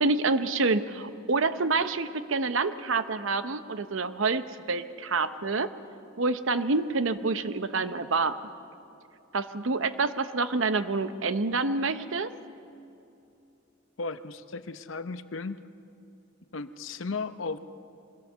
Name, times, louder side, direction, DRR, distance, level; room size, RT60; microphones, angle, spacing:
voice 1, 0.0-5.7 6.2-8.4 9.3-12.3, right 3 dB, 70° right, 12 dB, 0.8 m, -27 dB
voice 2, 14.0-15.6 16.5-17.6, left 4 dB, 70° left, 12 dB, 0.7 m, -35 dB
23.5 x 16.5 x 6.9 m, 2.7 s
head